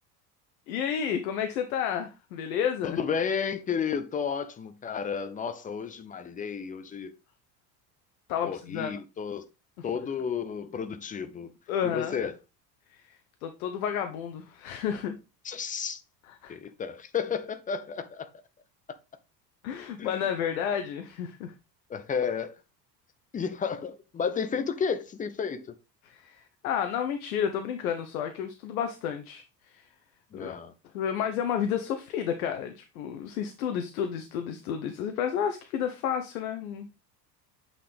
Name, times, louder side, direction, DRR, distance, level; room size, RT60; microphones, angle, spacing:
voice 1, 0.7-3.0 8.3-8.9 9.8-9.9 11.7-12.2 12.9-15.2 16.4-16.6 19.6-21.5 26.1-29.8 30.3-30.5 30.9-36.9, left 8 dB, 60° left, 0.9 m, -31 dB
voice 2, 2.8-7.2 8.4-9.5 9.8-11.5 11.8-12.3 15.4-16.0 16.5-18.3 20.0-20.3 21.9-22.6 23.3-25.7 30.3-30.7, left 6 dB, 15° left, 0.6 m, -32 dB
8.3 x 4.2 x 3.4 m
figure-of-eight pair, 70°, 50 cm